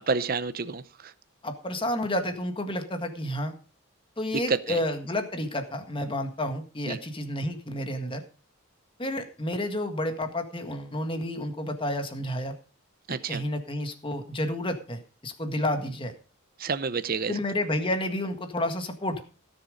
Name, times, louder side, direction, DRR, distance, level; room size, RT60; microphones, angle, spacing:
voice 1, 0.1-0.8 4.5-4.8 6.9-7.0 13.1-13.4 16.6-17.3, right 5 dB, 45° right, 13 dB, 0.7 m, -28 dB
voice 2, 1.4-3.5 4.2-8.2 9.0-12.5 13.1-16.1 17.3-19.2, left 1 dB, 25° left, 6 dB, 1.7 m, -30 dB
17.0 x 7.1 x 5.1 m, 0.37 s
head